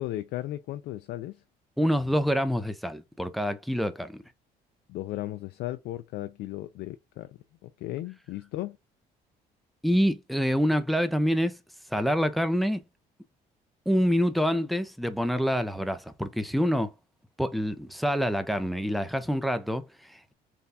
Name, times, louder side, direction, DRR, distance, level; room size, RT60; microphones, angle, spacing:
voice 1, 0.0-1.4 4.9-8.8, left 15 dB, 75° left, 0.4 m, -36 dB
voice 2, 1.8-4.2 9.8-11.6 11.9-12.8 13.9-16.9 17.4-20.3, equal, ahead, 0.5 m, -26 dB
3.4 x 2.3 x 4.0 m
cardioid pair, 110°, 17 cm